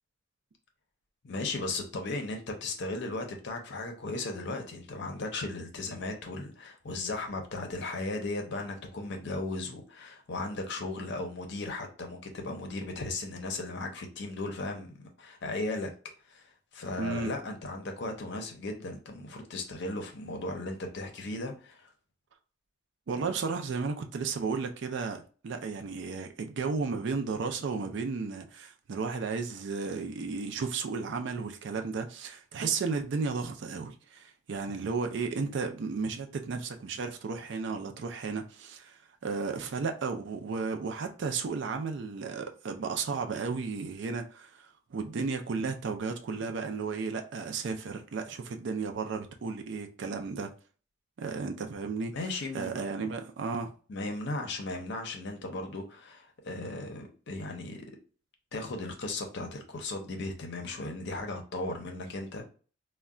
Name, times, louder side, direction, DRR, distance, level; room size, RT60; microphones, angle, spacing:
voice 1, 1.2-15.9 16.3-21.9 52.1-52.8 53.9-57.9 58.5-62.5, left 2 dB, 60° left, 0.6 m, -36 dB
voice 2, 17.0-17.3 23.1-50.5 51.2-52.1 52.5-53.7, right 4 dB, 60° right, 0.4 m, -34 dB
2.2 x 2.2 x 3.7 m
head